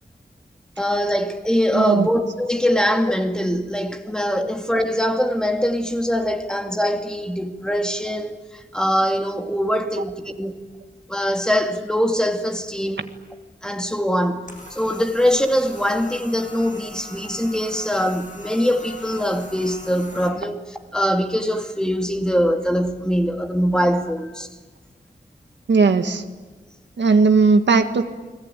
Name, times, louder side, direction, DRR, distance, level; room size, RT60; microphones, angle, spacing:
voice 1, 0.8-10.6 11.1-13.1 13.6-24.5, equal, 5° left, 2.4 m, -22 dB
voice 2, 1.7-2.1 25.7-26.2 27.0-28.0, right 4 dB, 90° right, 1.8 m, -17 dB
sound 1, 14.5-20.3, left 1 dB, 45° left, 7.6 m, -41 dB
30.0 x 21.5 x 9.1 m
wide cardioid pair, 90°, 18 cm